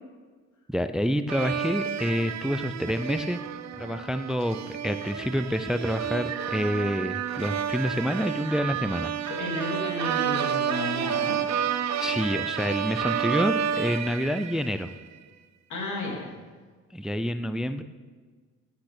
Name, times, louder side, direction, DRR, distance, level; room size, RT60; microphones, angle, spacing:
voice 1, 0.7-3.4 3.8-9.1 12.0-14.9 16.9-17.8, equal, ahead, 11 dB, 0.5 m, -28 dB
sound 1, 1.3-15.0, right 8 dB, 65° right, 0.8 m, -30 dB
voice 2, 9.2-11.6 15.7-16.3, left 1 dB, 75° left, 0 dB, 3.0 m, -33 dB
12.0 x 8.5 x 6.0 m, 1.5 s
cardioid pair, 90°, 30 cm